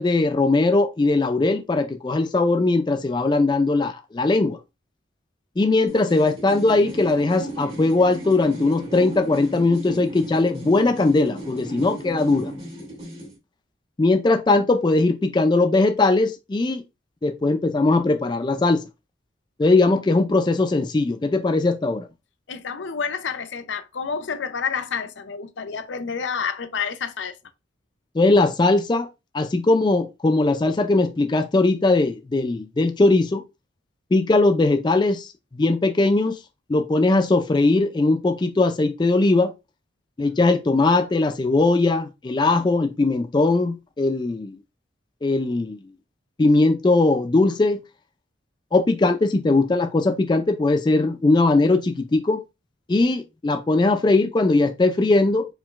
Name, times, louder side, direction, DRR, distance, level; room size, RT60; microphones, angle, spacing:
voice 1, 0.0-4.6 5.6-12.5 14.0-16.8 17.2-18.8 19.6-22.1 28.2-29.1 29.3-33.4 34.1-36.4 36.7-39.5 40.2-44.6 45.2-45.8 46.4-47.8 48.7-52.4 52.9-55.5, left 2 dB, 25° left, 0.3 m, -20 dB
sound 1, 5.9-13.4, right 1 dB, 30° right, 1.9 m, -35 dB
voice 2, 22.5-27.3, left 6 dB, 70° left, 0.6 m, -29 dB
4.6 x 3.8 x 2.4 m
head